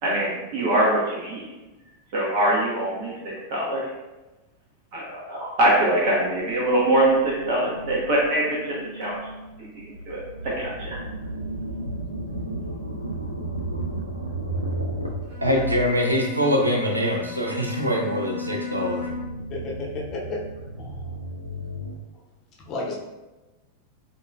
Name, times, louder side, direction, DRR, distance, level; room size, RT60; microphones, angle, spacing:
voice 1, 0.0-1.4 2.1-3.9 4.9-9.2 10.1-11.0, right 1 dB, 45° right, -5 dB, 0.8 m, -23 dB
sound 1, 5.7-16.5 16.8-22.0, right 1 dB, 85° left, 0.4 m, -34 dB
Bowed string instrument, 15.2-19.4, left 7 dB, 70° right, 1.0 m, -35 dB
voice 2, 15.4-19.0, equal, 85° right, 0 dB, 0.5 m, -23 dB
voice 3, 19.5-20.4 20.8-21.1 22.7-23.0, left 3 dB, 35° left, -3 dB, 0.8 m, -32 dB
3.8 x 2.6 x 2.3 m, 1.1 s
figure-of-eight pair, 90°, 0 cm